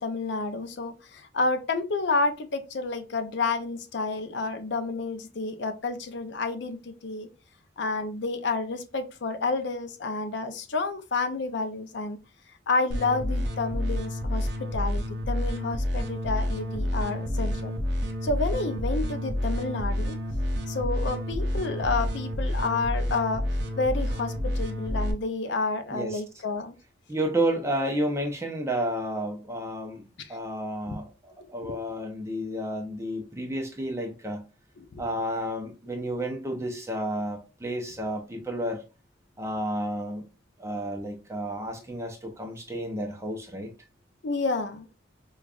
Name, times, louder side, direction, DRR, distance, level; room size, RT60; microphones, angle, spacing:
voice 1, 0.0-7.3 7.8-12.2 12.7-17.8 18.2-20.2 20.7-23.4 23.8-26.7 30.2-30.4 30.9-31.0 34.8-35.0 44.2-44.9, left 3 dB, 65° left, 0.5 m, -30 dB
sound 1, 12.9-25.1, left 1 dB, 60° right, 0.6 m, -29 dB
voice 2, 27.1-34.5 35.0-38.8 39.4-40.3 40.6-43.7, right 1 dB, 15° right, 0.6 m, -31 dB
5.1 x 2.4 x 2.4 m
head